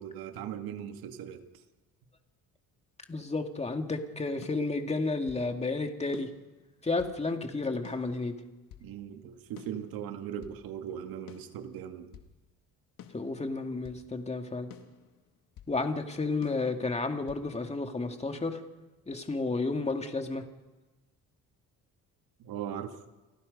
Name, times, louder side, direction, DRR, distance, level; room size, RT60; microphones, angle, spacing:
voice 1, 0.0-1.4 8.8-12.2 22.4-23.0, right 9 dB, 80° right, 6 dB, 2.2 m, -39 dB
voice 2, 3.1-6.3 6.8-8.4 13.1-14.7 15.7-18.6 19.1-20.4, left 3 dB, 20° left, 5 dB, 2.3 m, -32 dB
sound 1, 4.4-5.5 6.1-7.2 7.8-8.9 9.6-10.6 11.3-12.3 13.0-14.0 14.7-15.8 16.4-17.5, left 10 dB, 70° left, 2.5 m, -52 dB
29.5 x 19.5 x 5.4 m, 1.2 s
cardioid pair, 105°, 35 cm